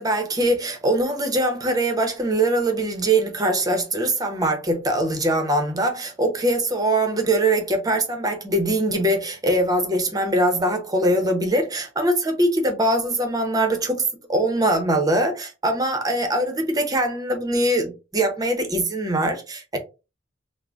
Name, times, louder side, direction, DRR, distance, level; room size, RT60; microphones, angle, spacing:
voice 1, 0.0-19.8, right 1 dB, 20° right, 0.7 m, -22 dB
3.7 x 2.1 x 3.5 m
head